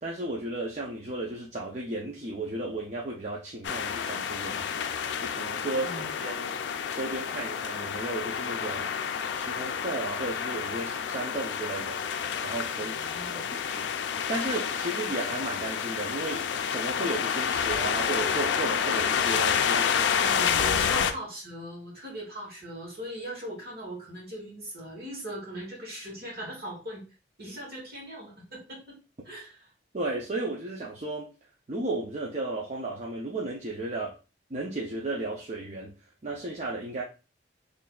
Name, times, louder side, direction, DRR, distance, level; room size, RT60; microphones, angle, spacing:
voice 1, 0.0-4.8 5.2-6.5 6.9-8.9 9.3-12.0 12.4-13.0 13.3-20.2 29.9-31.3 31.7-34.2 34.5-35.9 36.2-37.0, right 2 dB, 40° right, -3 dB, 0.6 m, -34 dB
sound 1, 3.6-21.1, left 7 dB, 90° left, 0.4 m, -29 dB
voice 2, 12.8-13.4 20.0-27.0 27.4-29.0 29.2-29.7, right 1 dB, 60° right, -3 dB, 1.9 m, -40 dB
4.0 x 3.3 x 2.3 m, 0.33 s
head